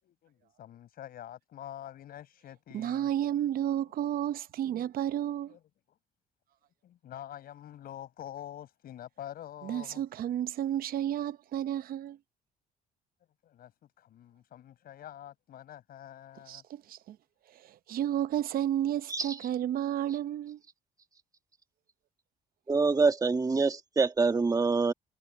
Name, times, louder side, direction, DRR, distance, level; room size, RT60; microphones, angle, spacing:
voice 1, 0.0-3.1 4.0-4.1 5.5-5.6 5.9-6.0 6.8-10.0 13.4-16.6, left 11 dB, 60° left, 6.4 m, -46 dB
voice 2, 2.7-5.6 9.6-12.2 16.5-17.2 17.6-20.6, right 11 dB, 60° right, 0.8 m, -32 dB
voice 3, 22.7-24.9, right 4 dB, 20° right, 1.9 m, -25 dB
cardioid pair, 110°, 17 cm